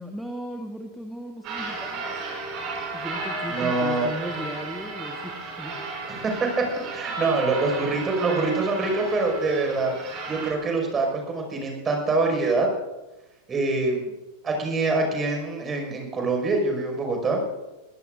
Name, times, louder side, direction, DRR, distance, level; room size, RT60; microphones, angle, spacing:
voice 1, 0.0-2.3 2.9-5.8, equal, ahead, 2 dB, 1.5 m, -37 dB
sound 1, 1.4-10.5, right 3 dB, 40° right, 6.4 m, -34 dB
voice 2, 3.5-4.1 6.1-6.2 6.9-9.9 10.3-12.7 13.5-14.1 14.4-17.4, right 3 dB, 20° right, 2 dB, 5.7 m, -25 dB
23.5 x 17.5 x 2.6 m, 1.1 s
figure-of-eight pair, 90°, 0 cm